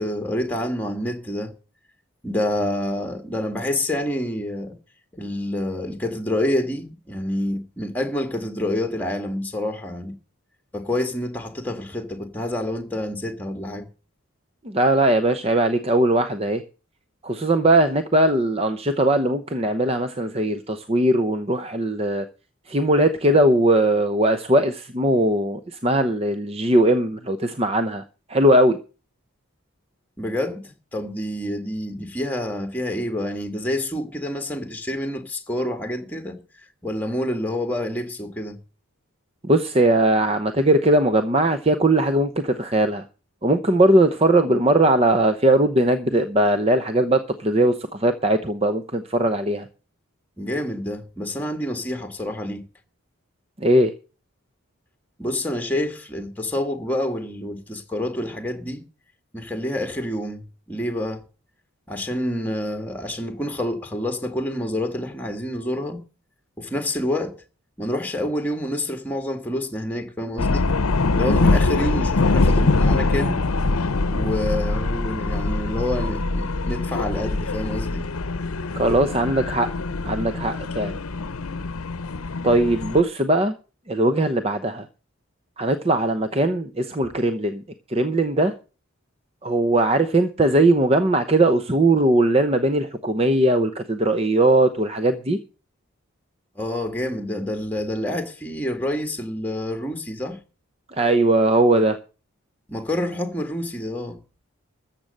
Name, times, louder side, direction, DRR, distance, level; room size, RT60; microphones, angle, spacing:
voice 1, 0.0-1.5 2.2-4.8 5.1-10.1 10.7-13.9 30.2-36.4 36.8-38.6 50.4-52.6 55.2-58.8 59.3-61.2 61.9-66.0 66.6-67.4 67.8-70.7 71.1-73.4 74.1-78.1 96.5-100.4 102.7-104.2, left 1 dB, 5° left, 1.6 m, -28 dB
voice 2, 14.6-16.6 17.2-22.3 22.7-28.0 28.3-28.8 39.4-43.1 43.4-49.7 53.6-53.9 78.8-79.7 80.0-81.0 82.4-83.5 83.9-84.9 85.6-87.6 87.9-88.5 89.4-95.4 100.9-102.0, right 1 dB, 25° right, 0.7 m, -19 dB
sound 1, 70.4-83.0, left 3 dB, 85° left, 0.8 m, -23 dB
14.0 x 7.5 x 6.5 m
head